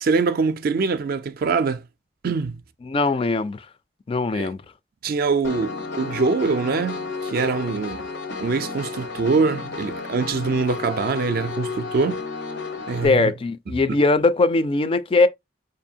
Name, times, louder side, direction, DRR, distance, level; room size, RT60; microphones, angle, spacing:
voice 1, 0.0-1.8 2.2-2.6 4.3-4.5 5.0-8.1 8.4-12.2 12.9-13.3, right 4 dB, 55° right, 0.4 m, -23 dB
voice 2, 2.8-3.7 4.1-4.6 13.0-15.3, left 3 dB, 30° left, 0.3 m, -20 dB
Piano, 5.4-13.1, left 4 dB, 90° left, 0.9 m, -32 dB
4.8 x 2.6 x 2.7 m
head